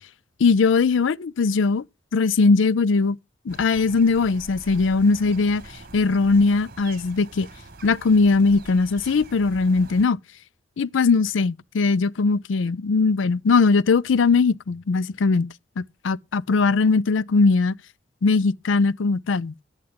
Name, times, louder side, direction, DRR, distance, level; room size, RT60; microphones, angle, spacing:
voice 1, 0.4-1.8 2.1-3.2 3.5-5.6 5.9-7.5 7.8-10.2 10.8-15.5 15.8-17.8 18.2-19.5, left 4 dB, 85° left, 0.5 m, -20 dB
sound 1, 3.5-10.0, right 2 dB, 50° right, 1.4 m, -44 dB
12.0 x 9.5 x 3.6 m
head